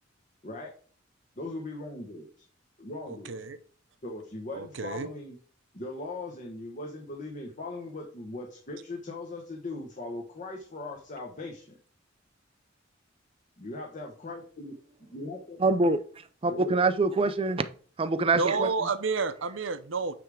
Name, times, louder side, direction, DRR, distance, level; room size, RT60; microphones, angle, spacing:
voice 1, 1.4-2.3 2.8-3.4 4.0-5.4 5.7-11.8 13.6-15.6 16.5-16.8, left 2 dB, 40° left, 1.2 m, -39 dB
voice 2, 3.1-3.6 4.5-5.1 18.3-20.1, right 4 dB, 70° right, 0.7 m, -30 dB
voice 3, 15.6-16.0 16.4-17.6 18.0-18.7, right 3 dB, 30° right, 0.4 m, -24 dB
9.0 x 3.5 x 4.9 m
head